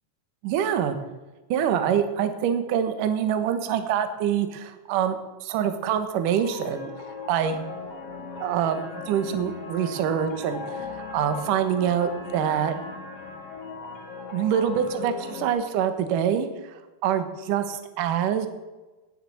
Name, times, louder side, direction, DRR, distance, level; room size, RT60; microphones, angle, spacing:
voice 1, 0.4-1.0 1.5-6.9 7.3-7.6 8.4-12.8 14.3-18.5, right 8 dB, 65° right, 8 dB, 2.3 m, -25 dB
sound 1, 6.3-15.5, left 4 dB, 40° left, 1.6 m, -38 dB
19.5 x 6.8 x 7.8 m, 1.1 s
omnidirectional pair, 5.0 m